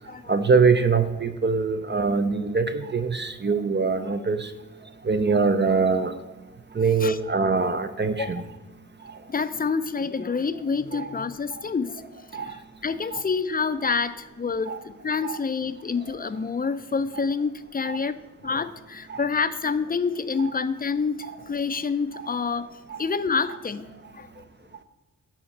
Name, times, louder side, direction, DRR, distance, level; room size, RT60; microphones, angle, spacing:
voice 1, 0.3-4.5 5.0-6.1 6.7-8.4 9.1-9.2 10.9-11.1 12.3-12.6 13.1-13.2 14.7-14.8 15.2-15.4 17.8-18.0 19.1-19.2 20.4-20.5 22.9-23.0, right 4 dB, 35° right, 9 dB, 0.6 m, -23 dB
voice 2, 9.3-12.0 12.3-12.6 12.8-22.7 23.0-23.9 24.1-24.3, left 5 dB, 30° left, 12 dB, 0.5 m, -27 dB
10.5 x 4.3 x 7.1 m, 1.1 s
wide cardioid pair, 100°, 31 cm